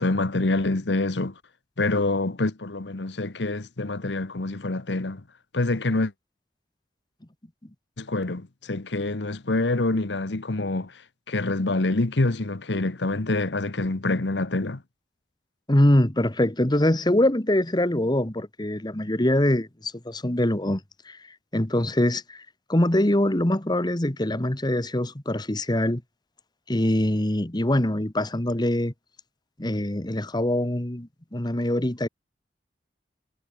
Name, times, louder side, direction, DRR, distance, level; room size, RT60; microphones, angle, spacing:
voice 1, 0.0-1.4 1.8-5.2 5.5-6.1 8.0-14.8, left 2 dB, 85° left, 1.2 m, -26 dB
voice 2, 15.7-21.2 21.5-26.0 26.7-28.9 29.6-32.1, left 1 dB, 25° left, 1.5 m, -23 dB
head